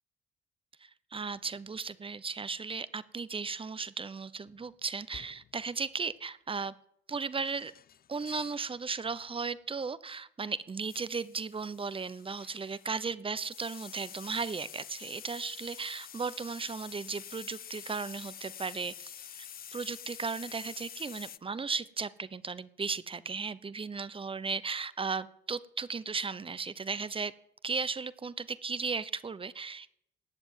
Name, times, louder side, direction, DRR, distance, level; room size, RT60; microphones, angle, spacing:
voice 1, 0.8-6.7 7.1-7.7 8.1-19.3 19.7-27.3 27.6-29.9, right 5 dB, 25° right, 17 dB, 0.9 m, -36 dB
sound 1, 4.5-4.7 5.1-5.6 7.3-8.7 9.0-9.3 10.9-13.1 13.5-21.4, left 9 dB, 50° left, 0.6 m, -48 dB
18.0 x 7.1 x 9.6 m, 0.73 s
cardioid pair, 90°, 20 cm